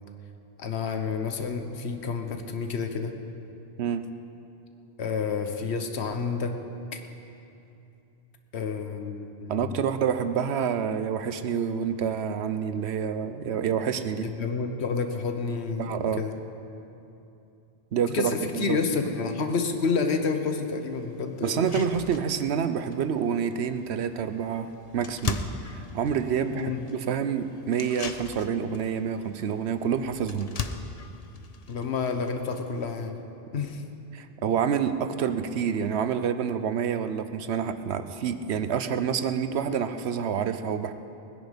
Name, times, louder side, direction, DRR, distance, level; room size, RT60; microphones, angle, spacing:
voice 1, 0.6-3.2 5.0-6.6 6.9-7.0 8.5-9.8 14.2-16.3 18.1-21.6 26.5-26.9 31.7-33.2 33.5-33.8, left 5 dB, 90° left, 6 dB, 1.2 m, -29 dB
voice 2, 9.5-14.3 15.8-16.2 17.9-18.8 21.4-30.5 34.1-40.9, right 7 dB, 85° right, 10 dB, 1.0 m, -28 dB
sound 1, 20.4-20.5 21.0-21.1 21.4-33.1, left 5 dB, 40° left, 0.7 m, -39 dB
20.5 x 10.5 x 5.2 m, 2.8 s
omnidirectional pair, 1.1 m